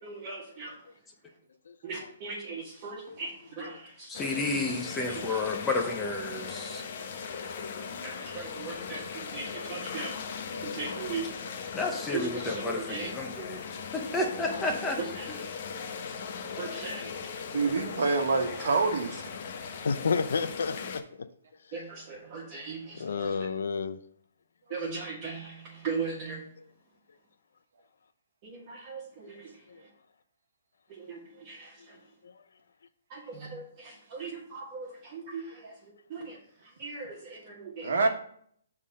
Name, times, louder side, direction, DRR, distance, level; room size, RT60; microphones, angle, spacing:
voice 1, 0.0-0.7 1.8-4.2 5.0-5.4 8.0-11.3 12.1-13.1 15.0-15.4 16.6-17.3 18.8-18.9 21.7-23.4 24.7-26.4 28.4-29.9 30.9-32.0 33.1-38.1, right 4 dB, 30° right, -6 dB, 1.6 m, -39 dB
sound 1, 4.1-21.0, left 6 dB, 40° left, 0.7 m, -38 dB
voice 2, 4.1-6.8 11.7-13.6 13.9-15.0, left 2 dB, 10° left, 1 dB, 0.7 m, -31 dB
voice 3, 4.6-5.4 7.0-7.1 10.5-11.1 11.7-11.8 16.5-16.6 17.0-17.2 19.8-21.3 23.0-24.0 29.7-29.8 32.2-32.3, left 5 dB, 75° left, 11 dB, 0.5 m, -33 dB
voice 4, 17.5-19.3 37.8-38.1, right 4 dB, 70° right, 5 dB, 1.2 m, -26 dB
6.5 x 3.7 x 6.3 m, 0.63 s
hypercardioid pair, 165°, 0 cm